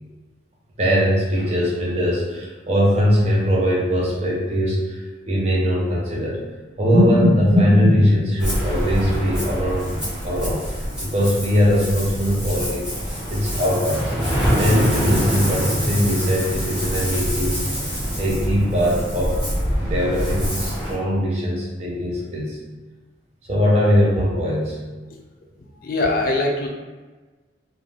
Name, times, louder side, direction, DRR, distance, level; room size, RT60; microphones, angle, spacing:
voice 1, 0.8-6.4 6.8-10.6 11.0-12.9 13.3-14.1 14.6-17.7 18.2-19.4 19.7-22.6 23.5-24.8, equal, 35° right, -4 dB, 0.6 m, -20 dB
Ocean, 8.4-20.9, equal, 5° right, 0.8 m, -25 dB
voice 2, 25.8-26.7, left 2 dB, 50° left, 1 dB, 0.4 m, -21 dB
2.5 x 2.2 x 3.1 m, 1.2 s
head